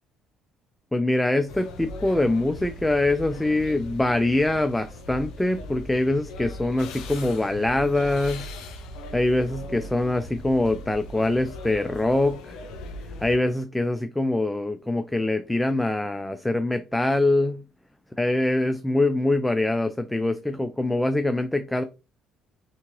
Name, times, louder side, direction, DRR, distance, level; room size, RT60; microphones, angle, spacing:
voice 1, 0.9-8.5 9.1-12.6 13.2-17.6 18.2-21.8, left 2 dB, 10° left, 0.3 m, -24 dB
sound 1, 1.5-13.4, left 2 dB, 75° left, 0.6 m, -39 dB
3.4 x 2.8 x 3.0 m
supercardioid pair, 75°, 0 cm